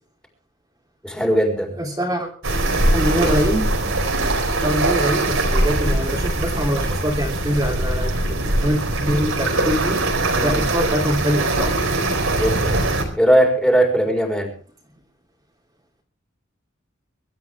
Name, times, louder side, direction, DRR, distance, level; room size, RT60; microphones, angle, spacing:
voice 1, 1.0-1.8 10.3-10.7 12.3-12.8 13.1-14.5, right 1 dB, 5° left, 1 dB, 4.5 m, -19 dB
voice 2, 1.8-2.3 2.9-3.7 4.6-10.0 10.4-11.8, equal, 20° right, -2 dB, 3.1 m, -23 dB
sound 1, 2.4-13.0, right 2 dB, 80° right, 4.5 m, -21 dB
24.0 x 12.5 x 3.6 m, 0.41 s
head